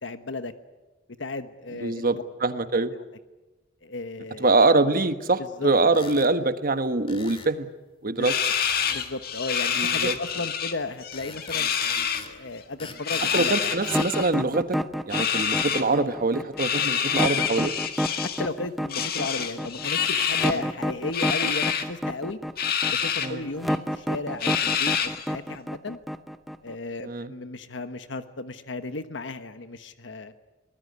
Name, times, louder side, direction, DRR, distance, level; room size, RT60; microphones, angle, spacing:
voice 1, 0.0-0.5 1.2-2.2 3.8-4.5 5.4-5.7 8.1-8.3 8.9-11.7 12.3-13.5 18.2-22.4 22.9-26.0 26.6-30.3, left 3 dB, 75° left, 10 dB, 1.2 m, -34 dB
voice 2, 1.8-2.9 4.4-7.7 8.0-8.3 9.8-10.1 13.3-14.8 15.1-17.7 20.5-20.6 23.2-23.5 27.0-27.3, right 3 dB, 50° right, 10 dB, 1.4 m, -24 dB
sound 1, 5.9-6.3 7.1-7.5 8.6-9.1 9.8-10.3 11.1-12.4 12.8-14.1, left 4 dB, 30° left, 2.2 m, -43 dB
sound 2, 8.2-10.7 11.0-12.2 13.0-14.3 15.1-15.8 16.6-18.5 18.9-20.6 21.1-21.8 22.6-23.3 23.7-23.8 24.4-25.3, left 8 dB, 55° left, 1.9 m, -27 dB
sound 3, 13.8-26.7, equal, ahead, 0.8 m, -29 dB
23.5 x 19.5 x 9.6 m, 1.1 s
head